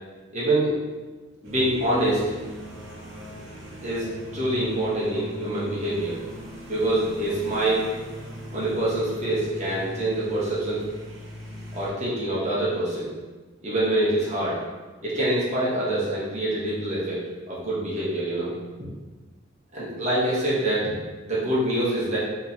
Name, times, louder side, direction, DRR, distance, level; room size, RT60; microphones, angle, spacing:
voice 1, 0.3-0.8 1.4-2.2 3.8-6.2 6.7-7.9 8.5-10.8 11.7-13.1 13.6-14.6 15.0-18.5 19.7-20.9 21.2-22.2, right 1 dB, 35° right, -8 dB, 1.3 m, -25 dB
sound 1, 1.4-11.9, equal, 75° right, 0.9 m, -39 dB
5.0 x 3.2 x 2.8 m, 1.3 s
head